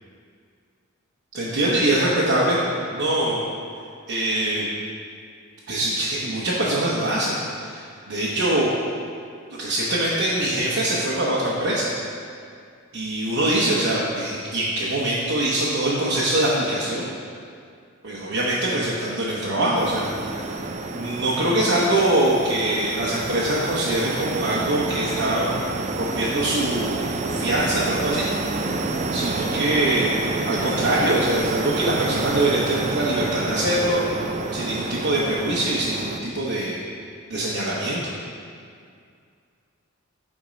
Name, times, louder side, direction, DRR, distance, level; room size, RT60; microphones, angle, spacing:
voice 1, 1.3-2.6 2.9-3.5 4.1-4.7 5.7-8.7 9.6-11.9 12.9-17.1 18.0-20.6 20.9-25.6 26.0-28.6 29.1-34.1 34.5-36.8 37.3-38.1, right 1 dB, 65° right, -6 dB, 0.9 m, -23 dB
sound 1, 19.7-36.2, right 3 dB, 35° right, 0.4 m, -29 dB
7.2 x 4.4 x 5.1 m, 2.3 s
head